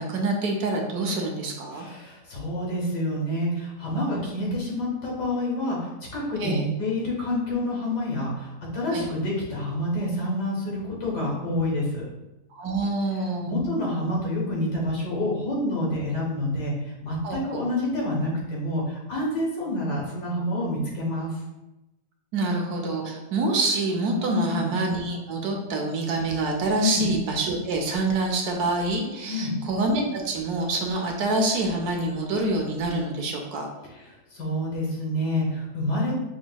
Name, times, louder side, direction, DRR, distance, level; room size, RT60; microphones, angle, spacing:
voice 1, 0.0-1.8 6.4-6.6 8.9-9.1 12.5-13.6 17.2-17.6 22.3-33.7, right 2 dB, 75° right, 1 dB, 1.2 m, -26 dB
voice 2, 1.7-5.8 6.1-12.0 13.5-21.3 24.3-24.7 26.8-27.2 29.3-29.6 33.9-36.1, left 1 dB, 85° left, -4 dB, 2.0 m, -28 dB
6.1 x 2.6 x 2.2 m, 1.0 s
omnidirectional pair, 1.7 m